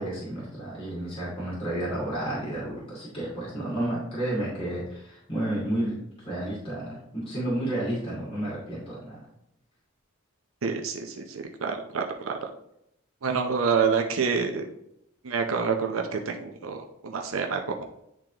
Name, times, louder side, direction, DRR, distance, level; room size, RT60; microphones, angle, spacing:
voice 1, 0.0-9.2, right 1 dB, 25° left, -7 dB, 2.5 m, -31 dB
voice 2, 10.6-12.3 13.2-14.6 15.2-17.8, right 5 dB, 85° right, 4 dB, 0.6 m, -27 dB
10.0 x 3.7 x 2.9 m, 0.81 s
head